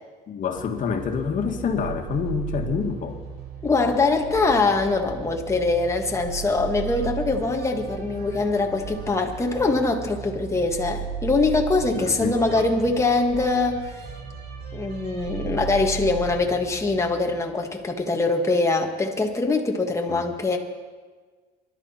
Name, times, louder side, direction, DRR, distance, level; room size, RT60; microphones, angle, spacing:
voice 1, 0.3-3.2 11.9-12.8 20.1-20.2, left 6 dB, 50° left, 4 dB, 2.0 m, -27 dB
sound 1, 0.6-17.9, right 6 dB, 75° right, 5.0 m, -36 dB
voice 2, 3.6-13.9 14.7-20.6, left 3 dB, 15° left, 2 dB, 1.7 m, -23 dB
24.5 x 11.5 x 4.4 m, 1.4 s
cardioid pair, 110°, 17 cm